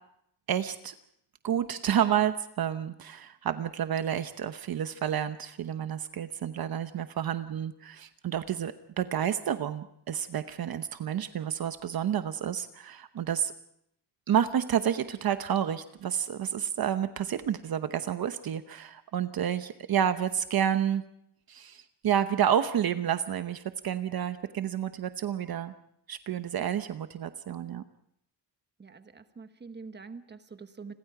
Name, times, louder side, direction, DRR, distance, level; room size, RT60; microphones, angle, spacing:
voice 1, 0.5-0.9 1.4-13.5 14.3-21.0 21.5-25.7 26.1-27.8, right 9 dB, 55° right, 10 dB, 0.9 m, -30 dB
voice 2, 28.8-30.9, right 4 dB, 25° right, 9 dB, 1.2 m, -45 dB
29.5 x 22.0 x 4.8 m, 0.73 s
wide cardioid pair, 155°, 42 cm